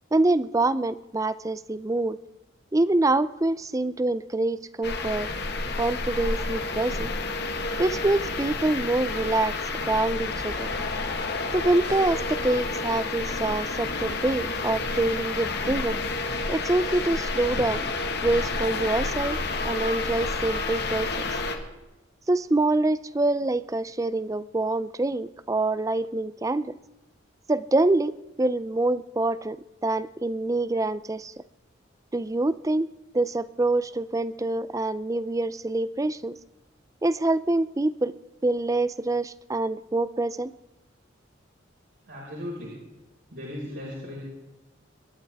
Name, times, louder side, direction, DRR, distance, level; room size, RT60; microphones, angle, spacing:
voice 1, 0.1-2.2 2.7-5.3 5.8-7.1 7.8-9.5 9.9-10.7 11.5-16.0 16.5-17.9 18.2-19.4 19.6-21.1 22.3-26.8 27.5-31.3 32.1-32.9 33.1-36.3 37.0-38.1 38.4-40.5, right 2 dB, 15° right, 16 dB, 0.4 m, -25 dB
sound 1, 4.8-21.6, left 3 dB, 55° left, 1.7 m, -30 dB
voice 2, 42.1-42.7 43.3-44.2, left 1 dB, 65° right, -6 dB, 5.3 m, -36 dB
26.5 x 12.5 x 3.6 m, 1.1 s
head